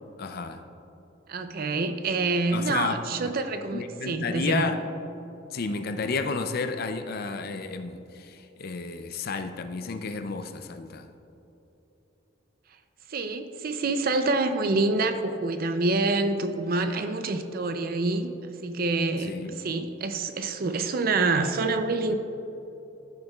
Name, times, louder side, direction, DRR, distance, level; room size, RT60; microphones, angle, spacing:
voice 1, 0.2-0.6 2.5-3.0 3.7-4.8 5.5-11.1 19.2-19.5, left 4 dB, 50° left, 8 dB, 0.5 m, -31 dB
voice 2, 1.3-4.7 13.1-22.1, right 3 dB, 50° right, 8 dB, 0.5 m, -27 dB
14.0 x 6.6 x 2.3 m, 2.9 s
head